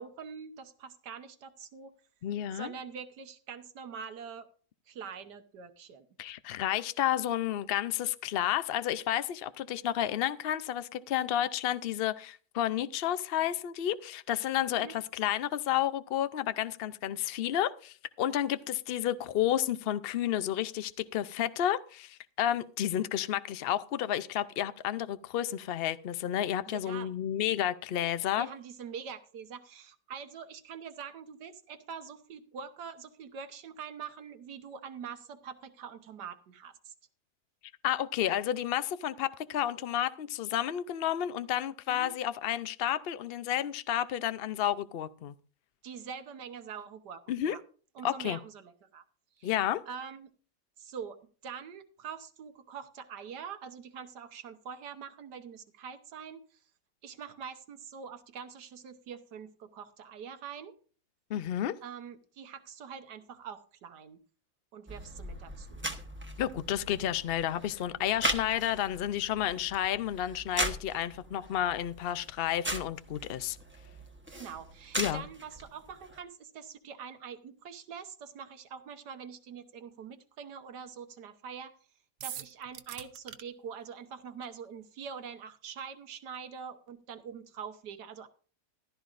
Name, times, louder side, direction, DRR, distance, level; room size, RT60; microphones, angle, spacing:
voice 1, 0.0-1.9 2.5-4.5 4.9-6.0 14.8-14.9 26.7-27.1 28.3-36.9 41.9-42.1 45.8-47.6 47.9-49.0 49.4-49.5 49.9-50.3 50.8-56.6 57.0-60.7 61.8-64.2 64.7-65.8 74.3-81.8 82.2-88.3, right 7 dB, 85° right, 9 dB, 1.7 m, -44 dB
voice 2, 2.2-2.7 6.2-28.5 37.8-45.3 47.3-47.6 48.0-48.4 49.4-49.8 61.3-61.8 66.4-73.6 75.0-75.2, left 11 dB, 85° left, 14 dB, 0.5 m, -31 dB
sound 1, 64.9-76.2, right 1 dB, 10° right, 0.9 m, -39 dB
sound 2, 82.2-83.4, right 10 dB, 60° right, 1.0 m, -41 dB
15.0 x 12.5 x 2.5 m, 0.40 s
omnidirectional pair, 1.7 m